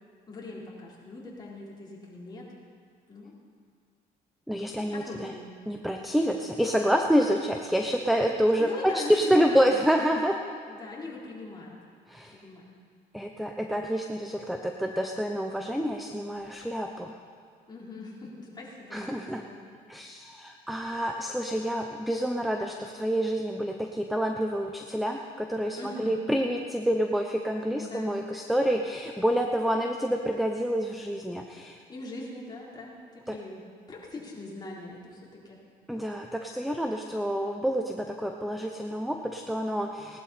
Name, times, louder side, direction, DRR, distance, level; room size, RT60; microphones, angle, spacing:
voice 1, 0.3-2.5 3.1-3.3 4.9-5.5 8.2-10.0 10.7-11.8 12.4-12.7 17.7-19.0 19.4-19.6 25.7-26.1 27.7-28.1 31.9-35.6, left 2 dB, 25° left, -5 dB, 4.0 m, -41 dB
voice 2, 4.5-5.3 5.7-10.4 12.1-12.4 13.1-17.2 18.9-19.4 19.9-31.8 33.3-33.4 35.9-40.2, equal, ahead, 3 dB, 0.7 m, -28 dB
18.5 x 12.0 x 4.3 m, 2.1 s
cardioid pair, 110°, 17 cm